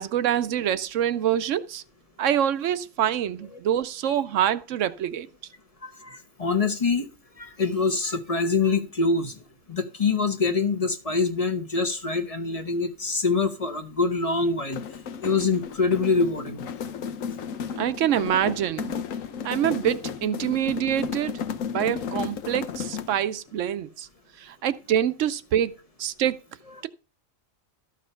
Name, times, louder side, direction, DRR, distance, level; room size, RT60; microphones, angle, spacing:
voice 1, 0.0-1.8 2.2-5.3 17.7-18.9 19.4-21.3 21.7-24.1 24.4-26.4, right 10 dB, 70° right, 1.0 m, -25 dB
voice 2, 5.8-7.1 7.4-9.4 9.7-14.8 15.2-16.6, left 4 dB, 30° left, 1.0 m, -25 dB
sound 1, 14.6-23.3, left 7 dB, 80° left, 1.2 m, -33 dB
13.0 x 5.0 x 5.5 m
omnidirectional pair, 1.3 m